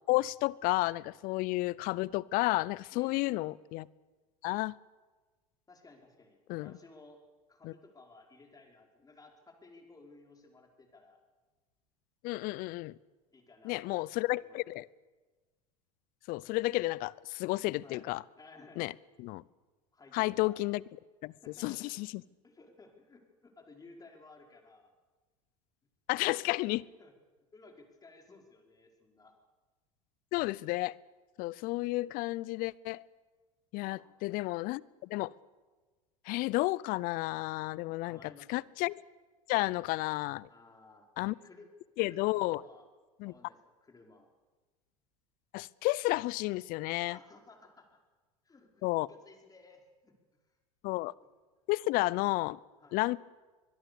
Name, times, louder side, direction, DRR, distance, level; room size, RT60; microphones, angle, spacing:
voice 1, 0.1-3.8 4.4-4.7 6.5-6.7 7.6-7.7 12.2-12.9 13.6-14.9 16.3-18.2 18.8-18.9 19.2-19.4 20.1-20.8 21.2-21.3 21.6-22.1 26.1-26.8 30.3-30.9 31.4-33.0 33.7-35.3 36.3-38.2 38.5-38.9 39.5-40.5 41.2-41.3 42.0-42.6 43.2-43.3 45.5-47.2 48.8-49.1 50.8-51.1 51.7-52.6 52.9-53.2, left 20 dB, 55° left, 24 dB, 0.7 m, -31 dB
voice 2, 2.9-3.6 5.7-7.2 7.5-11.2 13.3-14.7 17.8-18.1 18.4-18.9 19.9-20.6 21.4-22.0 22.4-24.9 26.1-27.1 27.5-29.3 33.8-34.4 38.0-38.7 40.5-41.7 42.0-42.9 43.2-44.3 47.1-48.0 48.4-50.2 50.5-50.6 52.8-53.0, left 3 dB, 20° left, 2 dB, 5.0 m, -57 dB
23.5 x 21.5 x 7.0 m, 1.3 s
hypercardioid pair, 80°, 18 cm